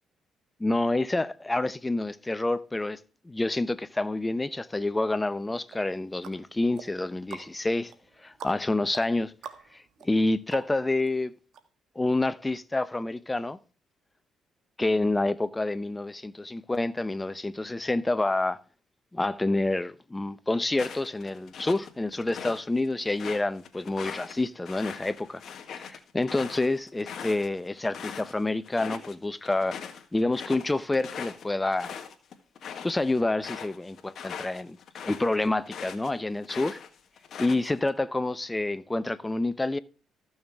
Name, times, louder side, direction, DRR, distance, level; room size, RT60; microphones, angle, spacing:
voice 1, 0.6-3.0 3.2-7.9 8.2-9.3 9.7-11.3 12.0-13.6 14.8-18.6 19.1-25.4 25.8-29.8 30.1-31.9 32.8-34.8 35.0-36.8 37.4-39.8, left 2 dB, 15° left, 0.7 m, -28 dB
sound 1, 5.7-11.1 11.5-11.6, right 8 dB, 75° right, 1.3 m, -46 dB
sound 2, 20.7-22.6 23.0-28.3 28.6-29.1 29.4-36.1 36.4-37.9, left 7 dB, 60° left, 1.5 m, -41 dB
14.0 x 6.5 x 3.5 m
cardioid pair, 90°, 0 cm